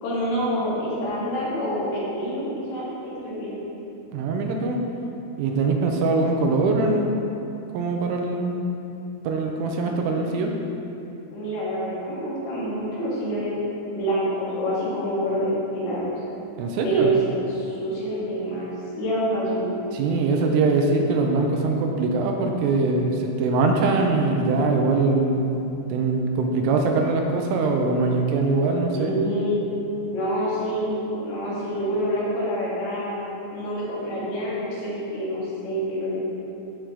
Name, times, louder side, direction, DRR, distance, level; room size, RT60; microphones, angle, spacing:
voice 1, 0.0-3.6 11.3-13.5 13.9-16.1 16.8-18.7 19.0-19.7 28.9-29.7 30.1-36.2, right 1 dB, 75° left, -8 dB, 5.0 m, -27 dB
voice 2, 4.1-4.8 5.4-7.2 7.7-8.6 9.2-10.5 16.6-17.1 19.9-29.1, right 3 dB, 85° right, 2 dB, 3.2 m, -22 dB
15.5 x 5.9 x 3.4 m, 2.9 s
omnidirectional pair, 5.9 m